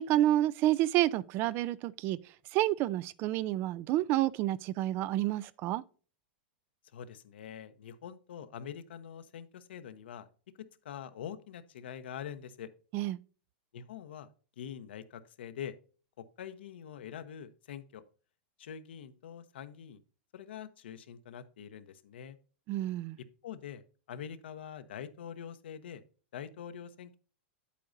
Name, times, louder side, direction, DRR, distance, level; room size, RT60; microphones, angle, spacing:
voice 1, 0.0-2.2 2.5-5.8 12.9-13.2 22.7-23.2, right 14 dB, 40° right, 0.4 m, -29 dB
voice 2, 6.9-10.3 10.8-12.7 13.7-14.3 14.6-15.7 16.2-18.0 18.6-20.0 20.3-22.4 23.2-26.0 26.3-27.2, left 9 dB, 80° left, 0.9 m, -44 dB
8.7 x 8.3 x 2.6 m
hypercardioid pair, 125°, 6 cm